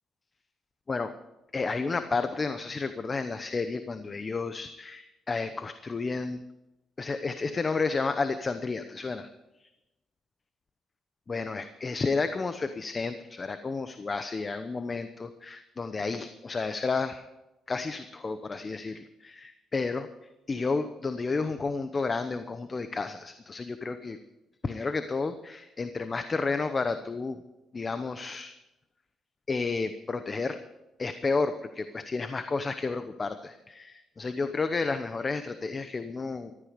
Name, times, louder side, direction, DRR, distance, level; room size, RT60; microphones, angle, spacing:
voice 1, 1.5-6.4 7.0-9.3 11.3-17.2 17.7-20.1 20.5-24.2 24.6-27.4 27.7-28.5 29.5-30.6 31.0-36.7, left 4 dB, 30° left, 10 dB, 0.8 m, -31 dB
14.5 x 13.5 x 5.1 m, 0.96 s
cardioid pair, 90°, 0 cm